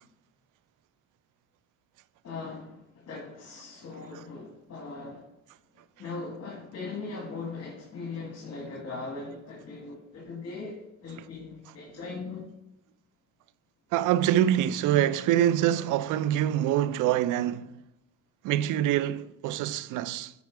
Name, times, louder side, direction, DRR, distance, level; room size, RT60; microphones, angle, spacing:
voice 1, 2.2-5.3 6.0-12.5, left 3 dB, 55° left, 1.8 m, -39 dB
voice 2, 13.9-17.7 18.4-20.3, right 12 dB, 85° right, 0.5 m, -25 dB
8.4 x 4.4 x 4.6 m
cardioid pair, 90°, 30 cm